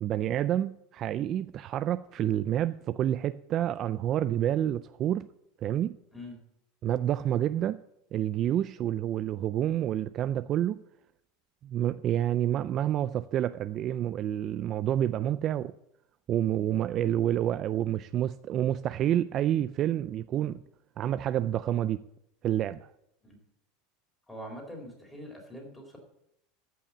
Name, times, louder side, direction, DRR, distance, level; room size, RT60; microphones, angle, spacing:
voice 1, 0.0-5.3 5.6-6.0 6.8-7.8 8.1-10.8 11.6-15.7 16.3-20.6 21.0-22.0 22.4-22.9, right 11 dB, 40° right, 0.3 m, -28 dB
voice 2, 24.3-26.0, equal, 5° left, 3.7 m, -43 dB
14.0 x 5.6 x 7.2 m
supercardioid pair, 135°, 0 cm